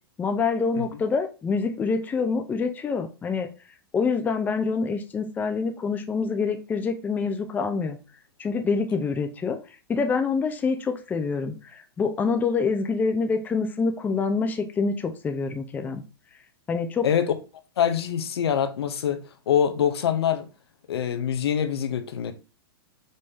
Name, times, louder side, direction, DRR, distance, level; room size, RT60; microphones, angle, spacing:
voice 1, 0.2-3.5 3.9-8.0 8.4-9.6 9.9-16.0 16.7-17.1, left 4 dB, 15° left, 0.5 m, -26 dB
voice 2, 17.0-17.3 17.8-20.5 20.9-22.3, left 8 dB, 80° left, 0.8 m, -24 dB
5.3 x 2.7 x 3.4 m
hypercardioid pair, 135°, 13 cm